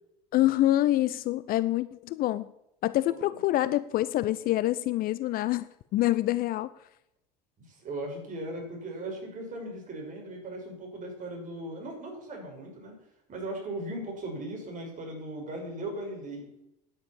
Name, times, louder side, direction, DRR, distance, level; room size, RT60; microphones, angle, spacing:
voice 1, 0.3-2.5 2.8-5.7 5.9-6.7, left 15 dB, 45° left, 16 dB, 0.6 m, -26 dB
voice 2, 7.6-13.0 13.3-16.5, right 1 dB, 35° right, 1 dB, 5.9 m, -38 dB
10.0 x 9.7 x 7.2 m, 0.79 s
figure-of-eight pair, 65°, 21 cm